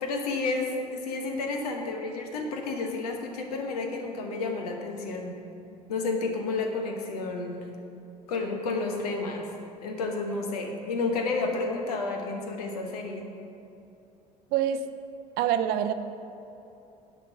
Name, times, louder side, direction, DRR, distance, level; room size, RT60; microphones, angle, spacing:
voice 1, 0.0-5.3 5.9-7.6 8.3-9.5 9.8-13.3, left 3 dB, 70° left, 3 dB, 1.2 m, -31 dB
voice 2, 14.5-14.9 15.4-15.9, right 10 dB, 50° right, 10 dB, 0.5 m, -25 dB
10.0 x 5.5 x 6.7 m, 2.8 s
figure-of-eight pair, 60°, 21 cm